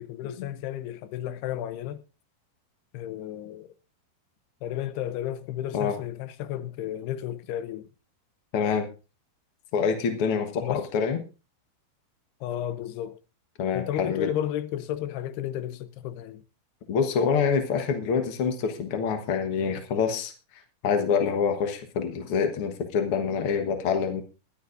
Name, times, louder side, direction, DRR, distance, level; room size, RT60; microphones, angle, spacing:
voice 1, 0.0-2.0 2.9-3.7 4.6-7.9 10.6-10.9 12.4-13.2 13.7-16.4, left 11 dB, 90° left, 2.9 m, -33 dB
voice 2, 8.5-8.9 9.7-11.2 13.6-14.3 16.9-24.2, left 6 dB, 70° left, 1.3 m, -26 dB
21.0 x 11.5 x 2.6 m
omnidirectional pair, 4.6 m